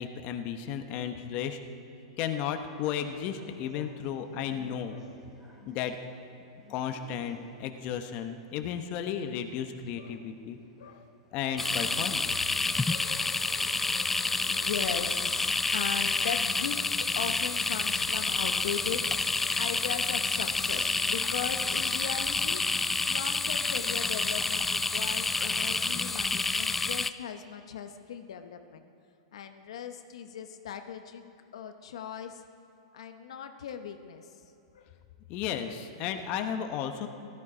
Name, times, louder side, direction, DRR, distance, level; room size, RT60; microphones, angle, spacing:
voice 1, 0.0-1.6 2.2-5.0 5.7-6.0 6.7-10.6 11.3-12.4 35.3-37.1, left 8 dB, 40° left, 7 dB, 1.0 m, -34 dB
voice 2, 2.3-2.6 3.7-4.0 4.9-5.1 9.2-9.3 9.9-10.3 10.8-11.2 12.2-12.4 12.8-22.7 23.0-28.8 29.3-31.2 31.5-32.4 32.9-34.4 34.7-34.9 35.6-35.9, left 8 dB, 75° left, 7 dB, 0.9 m, -39 dB
sound 1, 2.3-12.3, right 1 dB, 15° right, 3.1 m, -57 dB
sound 2, 11.6-27.1, left 3 dB, 10° left, 0.3 m, -29 dB
15.5 x 13.0 x 4.9 m, 2.7 s
hypercardioid pair, 135°, 3 cm